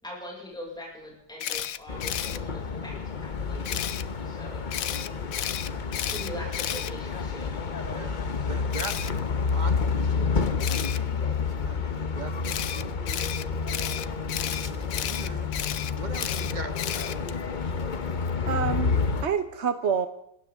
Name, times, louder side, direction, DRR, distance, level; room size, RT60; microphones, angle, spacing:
voice 1, 0.0-4.0 4.2-4.7 6.1-7.5, equal, ahead, -3 dB, 5.8 m, -41 dB
Camera, 1.4-2.4 3.6-4.0 4.7-7.5 8.7-9.1 10.6-11.0 12.4-17.4, left 10 dB, 60° left, 1.0 m, -32 dB
sound 1, 1.9-19.3, left 5 dB, 35° left, 0.8 m, -29 dB
voice 2, 7.7-13.1 15.0-15.5 15.9-17.7, right 3 dB, 25° right, 7 dB, 1.8 m, -42 dB
voice 3, 18.5-20.1, right 7 dB, 45° right, 9 dB, 1.0 m, -27 dB
27.0 x 14.5 x 3.7 m, 0.79 s
omnidirectional pair, 1.9 m